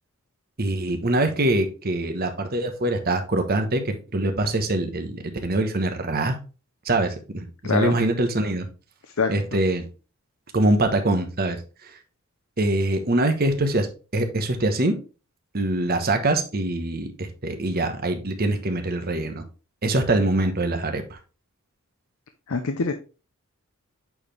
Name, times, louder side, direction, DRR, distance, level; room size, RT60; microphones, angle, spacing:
voice 1, 0.6-6.4 6.8-8.7 9.3-9.8 10.5-11.6 12.6-13.9 14.1-15.0 15.5-19.4 19.8-21.2, right 2 dB, 45° right, 1.1 m, -24 dB
voice 2, 7.6-8.0 9.2-9.3 22.5-22.9, left 4 dB, 75° left, 0.6 m, -24 dB
8.5 x 4.4 x 3.3 m
head